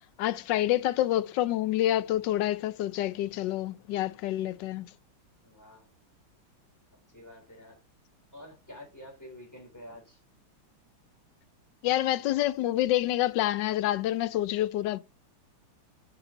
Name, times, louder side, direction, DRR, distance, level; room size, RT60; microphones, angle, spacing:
voice 1, 0.2-4.8 11.8-15.0, left 14 dB, 70° left, 1.2 m, -27 dB
voice 2, 5.4-5.9 7.1-7.8 8.3-10.2, left 1 dB, 10° left, 4.0 m, -48 dB
7.0 x 7.0 x 4.1 m
omnidirectional pair, 2.2 m